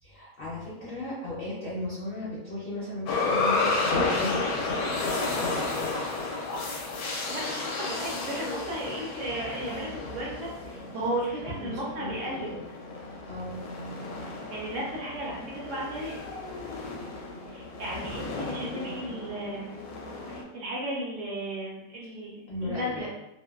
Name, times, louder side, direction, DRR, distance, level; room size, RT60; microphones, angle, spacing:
voice 1, 0.0-6.1 9.7-9.9 10.9-11.1 11.4-12.7 13.3-13.6 22.5-23.1, left 1 dB, 55° left, -8 dB, 0.7 m, -37 dB
sound 1, 3.1-20.4, left 3 dB, 85° left, 1.1 m, -32 dB
voice 2, 7.3-12.5 14.2-16.2 17.5-19.8 20.3-23.1, right 1 dB, 65° right, -3 dB, 0.9 m, -35 dB
2.7 x 2.2 x 2.3 m, 0.90 s
omnidirectional pair, 1.5 m